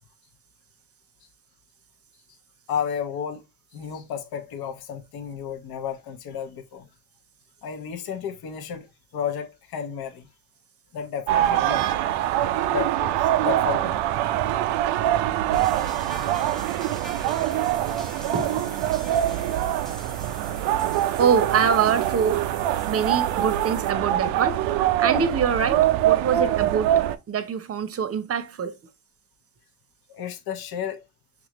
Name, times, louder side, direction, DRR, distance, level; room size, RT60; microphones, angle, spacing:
voice 1, 2.7-3.4 3.7-6.9 7.6-10.3 10.9-11.9 12.7-13.9 30.1-31.0, left 7 dB, 55° left, 0.9 m, -32 dB
sound 1, 11.3-27.2, right 12 dB, 85° right, 0.5 m, -24 dB
sound 2, 15.5-23.9, equal, ahead, 1.1 m, -44 dB
voice 2, 18.3-18.7 18.9-19.0 21.2-22.5 22.9-24.6 25.0-28.7, right 7 dB, 35° right, 0.7 m, -24 dB
5.9 x 2.4 x 2.9 m
supercardioid pair, 80°, 44 cm